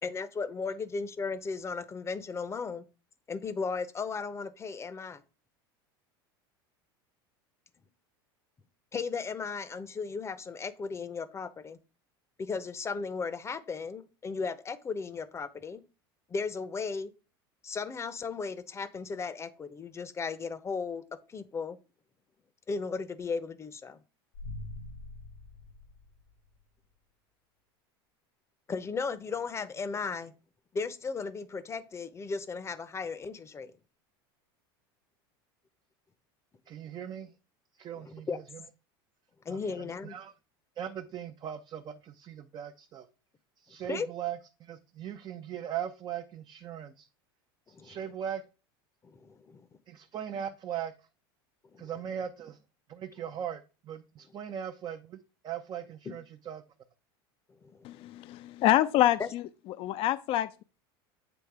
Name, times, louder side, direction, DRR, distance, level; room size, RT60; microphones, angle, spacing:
voice 1, 0.0-2.8 3.3-5.2 8.9-11.8 12.4-15.8 16.3-17.1 17.6-21.0 21.3-21.8 22.7-24.0 28.7-30.3 30.7-33.7 37.9-38.4 39.4-40.2 43.9-44.1 47.7-48.0 49.0-49.6 51.7-51.9 57.6-57.9 59.2-59.3, left 5 dB, 20° left, 0.7 m, -36 dB
sound 1, 24.3-26.6, left 2 dB, 85° left, 1.7 m, -44 dB
voice 2, 36.7-37.3 37.8-38.6 39.5-40.3 40.8-43.1 43.6-47.1 47.7-48.4 49.9-51.1 51.8-52.6 52.9-56.6, right 9 dB, 35° right, 0.6 m, -39 dB
voice 3, 57.8-59.5 59.8-60.6, left 13 dB, 50° left, 0.5 m, -26 dB
8.0 x 3.2 x 4.7 m
supercardioid pair, 105°, 12 cm